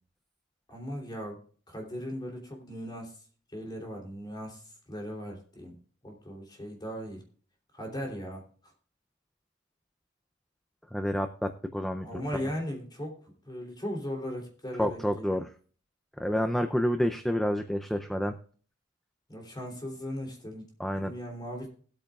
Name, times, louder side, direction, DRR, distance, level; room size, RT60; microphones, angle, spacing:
voice 1, 0.7-1.4 1.7-3.2 3.5-4.6 4.9-5.7 6.0-7.2 7.7-8.4 12.0-15.3 19.3-20.7 20.9-21.7, equal, 20° left, 0 dB, 3.1 m, -38 dB
voice 2, 10.9-12.1 14.8-15.5 16.2-18.3 20.8-21.1, equal, ahead, 6 dB, 0.5 m, -29 dB
19.5 x 8.6 x 2.4 m, 0.43 s
head